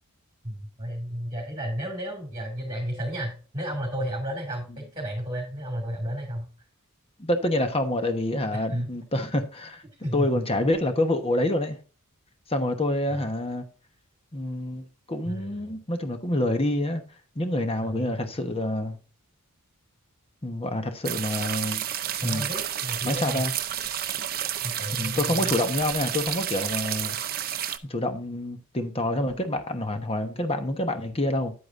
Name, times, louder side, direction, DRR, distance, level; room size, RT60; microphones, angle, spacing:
voice 1, 0.4-6.5 8.5-8.9 10.0-10.3 13.1-13.3 15.2-15.7 17.8-18.1 22.2-23.4 24.6-25.5, equal, 20° right, 2.5 m, -32 dB
voice 2, 7.2-9.8 10.1-11.8 12.5-13.6 14.3-17.0 17.3-19.0 20.4-21.8 22.2-22.5 23.0-23.5 25.0-27.2 27.9-31.5, left 1 dB, 25° left, 1.1 m, -27 dB
sound 1, 21.0-27.8, right 10 dB, 40° right, 0.6 m, -30 dB
9.8 x 8.6 x 2.6 m
head